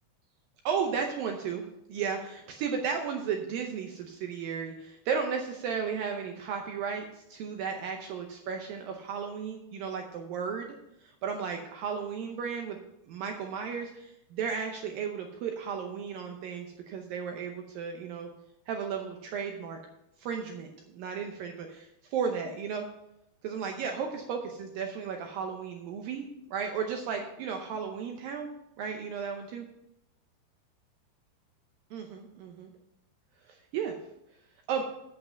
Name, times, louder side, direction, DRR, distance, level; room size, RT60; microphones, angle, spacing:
voice 1, 0.7-1.6 1.9-10.8 11.0-12.8 13.1-18.3 18.7-19.8 20.2-22.9 23.4-28.5 28.8-29.7 31.9-32.7 33.5-34.0 34.7-34.8, right 6 dB, 80° right, 3 dB, 2.0 m, -34 dB
8.1 x 8.0 x 5.6 m, 0.84 s
omnidirectional pair, 5.1 m